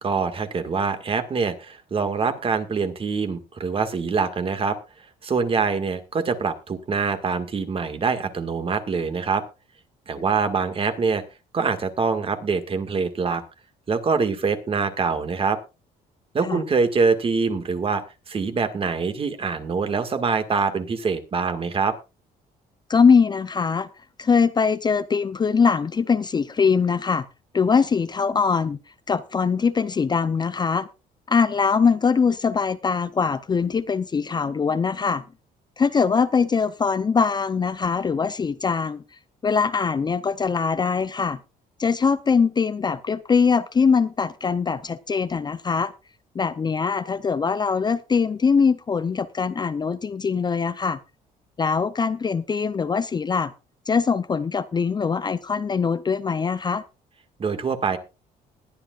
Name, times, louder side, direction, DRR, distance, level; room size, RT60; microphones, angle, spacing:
voice 1, 0.0-4.8 5.2-9.4 10.1-11.2 11.5-13.4 13.9-15.6 16.3-21.9 57.4-58.0, right 5 dB, 35° right, 8 dB, 1.9 m, -24 dB
voice 2, 22.9-23.9 24.2-27.2 27.5-28.8 29.1-30.9 31.3-35.2 35.8-39.0 39.4-41.4 41.8-45.9 46.3-51.0 51.6-53.5 53.9-56.8, left 5 dB, 25° left, 12 dB, 0.6 m, -22 dB
21.0 x 10.0 x 2.4 m, 0.28 s
cardioid pair, 120°, 16 cm